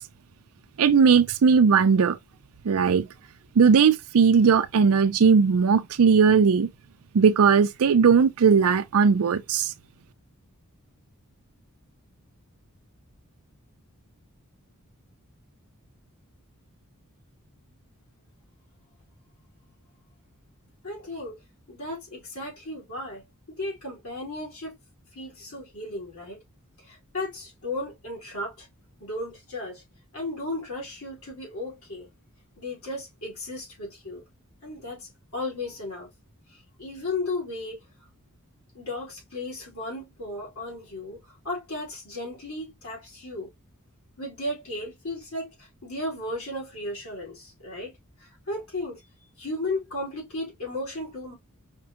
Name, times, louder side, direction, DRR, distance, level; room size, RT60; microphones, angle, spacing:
voice 1, 0.8-2.2 2.6-3.1 3.6-6.7 7.1-9.7, right 6 dB, 70° right, 0.4 m, -18 dB
voice 2, 20.8-21.4 21.7-24.7 25.1-26.4 26.8-28.7 29.0-29.8 30.1-32.1 32.6-34.2 34.6-36.1 36.5-37.8 38.7-43.5 44.2-49.0 49.4-51.3, left 2 dB, 75° left, 2.5 m, -35 dB
5.1 x 2.3 x 2.7 m
head